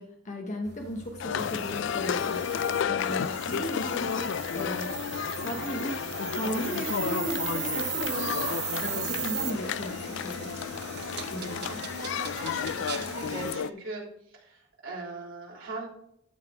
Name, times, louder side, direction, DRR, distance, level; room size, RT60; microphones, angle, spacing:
voice 1, 0.0-2.4 2.9-5.0 5.4-6.0 6.3-10.5 11.3-11.6, equal, 40° left, 1 dB, 1.0 m, -36 dB
sound 1, 0.6-13.6, right 10 dB, 55° right, 0.9 m, -38 dB
sound 2, 1.2-13.7, left 7 dB, 65° left, 0.3 m, -32 dB
voice 2, 11.1-15.9, right 2 dB, 85° right, -4 dB, 3.5 m, -41 dB
12.5 x 4.1 x 4.8 m, 0.75 s
head